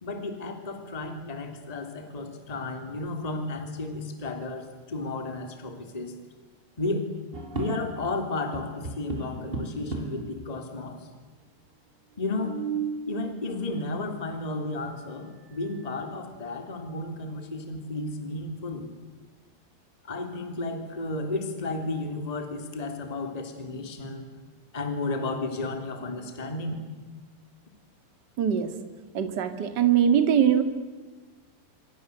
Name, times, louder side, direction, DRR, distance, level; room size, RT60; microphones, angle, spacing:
voice 1, 0.0-6.2 6.8-7.1 7.5-11.1 12.2-12.6 13.1-18.9 20.0-24.3 24.7-26.8, left 2 dB, 10° left, 6 dB, 2.5 m, -33 dB
sound 1, 7.3-8.2 8.5-10.3 11.1-11.2 11.3-11.4 12.1-13.1 14.8-14.9 15.4-15.9 16.3-16.4 16.9-17.8, right 4 dB, 15° right, 3.3 m, -35 dB
voice 2, 28.4-28.7 29.1-30.6, right 9 dB, 35° right, 8 dB, 1.9 m, -22 dB
26.5 x 26.0 x 8.1 m, 1.4 s
omnidirectional pair, 4.8 m